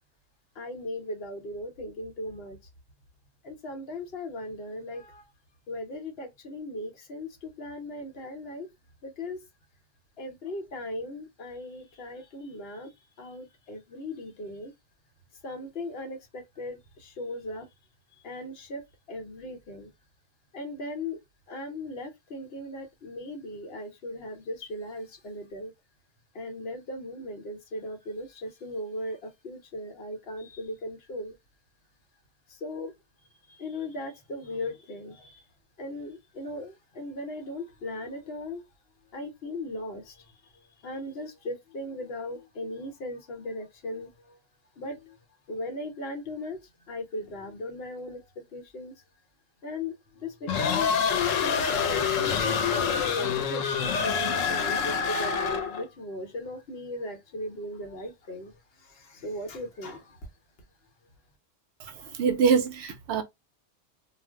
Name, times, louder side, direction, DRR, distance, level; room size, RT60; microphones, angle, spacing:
voice 1, 0.5-2.6 3.4-5.3 5.7-8.7 9.0-9.4 10.2-14.7 15.4-17.7 18.2-19.9 20.5-21.2 21.5-25.7 26.3-31.4 32.5-32.9 33.5-35.5 35.8-38.7 39.1-44.4 44.8-49.0 49.6-53.7 54.0-60.3, left 1 dB, 55° left, 1.0 m, -38 dB
sound 1, 50.5-55.8, left 6 dB, 90° left, 1.0 m, -26 dB
voice 2, 62.2-63.2, right 6 dB, 65° right, 0.8 m, -23 dB
2.5 x 2.0 x 3.4 m
omnidirectional pair, 1.3 m